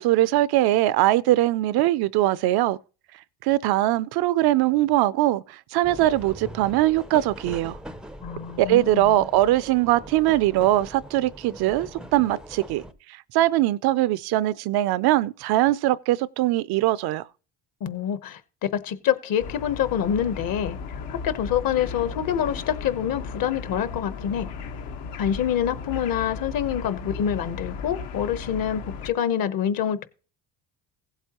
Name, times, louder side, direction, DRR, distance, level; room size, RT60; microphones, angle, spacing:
voice 1, 0.0-2.8 3.4-7.8 8.6-12.8 13.3-17.2, right 15 dB, 65° right, 0.5 m, -21 dB
sound 1, 5.8-12.9, right 1 dB, ahead, 0.4 m, -41 dB
voice 2, 8.2-9.2 17.8-18.4 18.8-20.8 21.1-24.5 25.2-30.1, left 9 dB, 55° left, 1.0 m, -26 dB
sound 2, 19.4-29.1, left 5 dB, 85° left, 1.5 m, -36 dB
16.0 x 7.9 x 2.9 m
cardioid pair, 150°, 42 cm